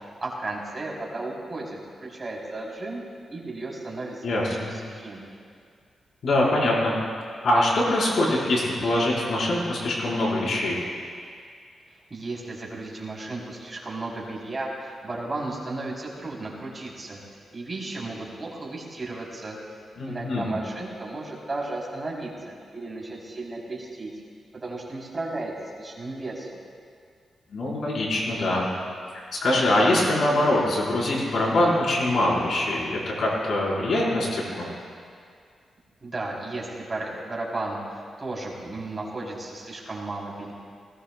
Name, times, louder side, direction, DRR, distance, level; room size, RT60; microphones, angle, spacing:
voice 1, 0.2-3.0 3.3-5.3 12.1-17.2 17.5-19.6 20.0-24.1 24.5-26.6 36.0-37.8 38.2-40.5, right 2 dB, 30° right, -4 dB, 3.2 m, -34 dB
voice 2, 4.2-4.7 6.2-6.9 7.4-10.8 20.0-20.5 27.5-28.7 29.1-34.7, left 1 dB, 70° left, -5 dB, 4.1 m, -23 dB
19.0 x 17.5 x 2.2 m, 2.2 s
cardioid pair, 100°, 0 cm